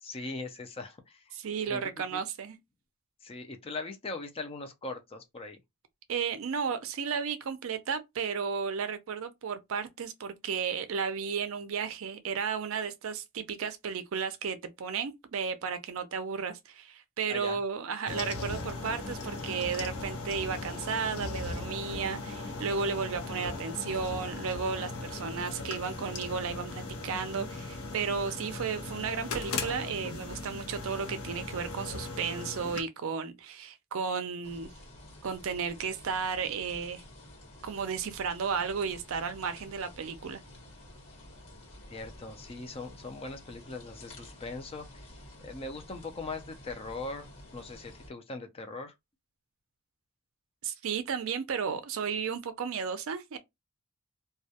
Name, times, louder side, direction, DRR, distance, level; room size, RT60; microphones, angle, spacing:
voice 1, 0.0-1.4 1.7-2.2 3.2-5.6 17.3-17.6 41.9-45.1 45.4-48.9, left 3 dB, 25° left, 0.4 m, -40 dB
voice 2, 1.3-2.6 6.1-34.7 35.2-37.0 37.6-40.4 50.6-53.4, right 6 dB, 65° right, 0.4 m, -33 dB
sound 1, 18.1-32.8, left 3 dB, 80° left, 0.6 m, -38 dB
sound 2, 34.4-48.1, left 1 dB, 60° left, 1.2 m, -51 dB
2.2 x 2.1 x 2.7 m
head